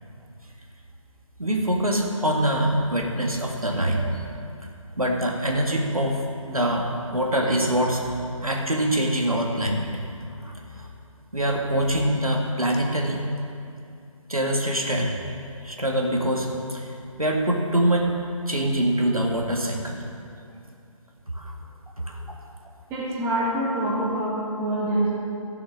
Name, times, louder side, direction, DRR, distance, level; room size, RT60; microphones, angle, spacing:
voice 1, 1.4-4.3 5.0-10.0 10.4-10.9 11.3-13.2 14.3-15.3 15.6-18.1 18.5-20.0 21.3-21.5 22.0-22.3, right 1 dB, 90° right, 0 dB, 2.0 m, -24 dB
voice 2, 22.9-25.1, right 1 dB, 10° right, -6 dB, 1.7 m, -25 dB
13.5 x 7.2 x 6.4 m, 2.5 s
figure-of-eight pair, 150°, 18 cm